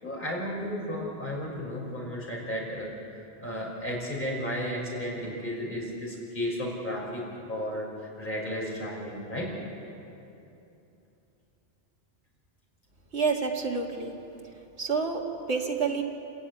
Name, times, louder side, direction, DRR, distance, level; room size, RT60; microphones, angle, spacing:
voice 1, 0.0-9.5, equal, 45° left, -3 dB, 5.7 m, -34 dB
voice 2, 13.1-14.1 14.8-16.0, right 5 dB, 85° right, 0 dB, 2.3 m, -28 dB
28.5 x 14.0 x 9.8 m, 2.8 s
omnidirectional pair, 1.1 m